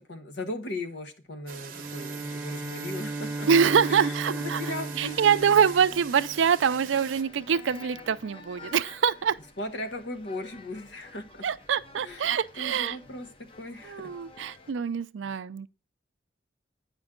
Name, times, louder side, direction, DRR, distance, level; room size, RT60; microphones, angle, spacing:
voice 1, 0.1-3.5 3.9-5.5 9.6-11.4 12.0-14.1, left 1 dB, 70° left, 1.1 m, -38 dB
sound 1, 1.5-7.2, right 8 dB, 50° right, 0.8 m, -43 dB
Bowed string instrument, 1.7-6.5, right 2 dB, 10° right, 0.5 m, -36 dB
voice 2, 3.5-4.6 5.0-9.4 11.4-13.0 13.9-15.7, right 7 dB, 85° right, 0.4 m, -25 dB
sound 2, 5.0-14.7, left 3 dB, 30° left, 0.6 m, -50 dB
8.9 x 5.1 x 3.7 m
head